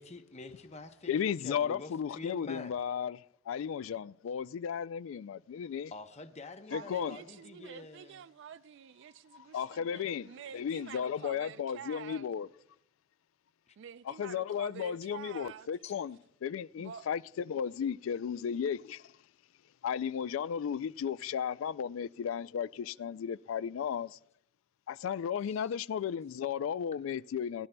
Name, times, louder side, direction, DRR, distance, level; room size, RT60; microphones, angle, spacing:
voice 1, 0.0-1.9 2.2-2.8 5.9-8.2 13.7-13.8 15.8-15.9 25.5-25.7, left 3 dB, 35° left, 0.7 m, -47 dB
voice 2, 1.1-5.9 6.7-7.2 9.5-12.5 14.2-17.2 17.5-19.1 19.8-24.2 24.9-27.7, left 8 dB, 70° left, 0.3 m, -34 dB
voice 3, 6.7-12.3 13.8-15.7 16.7-17.1, right 8 dB, 60° right, 0.3 m, -48 dB
20.5 x 12.0 x 2.2 m
head